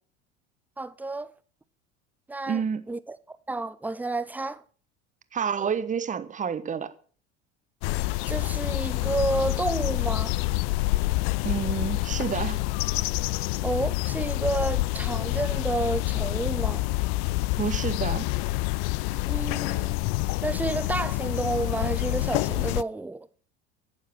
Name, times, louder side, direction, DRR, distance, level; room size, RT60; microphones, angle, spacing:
voice 1, 0.8-1.3 2.3-3.2 3.5-4.6 8.3-10.3 13.6-16.9 19.3-20.0 20.4-23.3, right 2 dB, 5° right, 0.6 m, -30 dB
voice 2, 2.5-2.9 5.3-6.9 11.4-12.6 17.6-18.3, right 7 dB, 20° right, 1.1 m, -29 dB
sound 1, 7.8-22.8, left 20 dB, 50° left, 0.5 m, -27 dB
15.0 x 7.2 x 6.3 m
figure-of-eight pair, 70°, 35 cm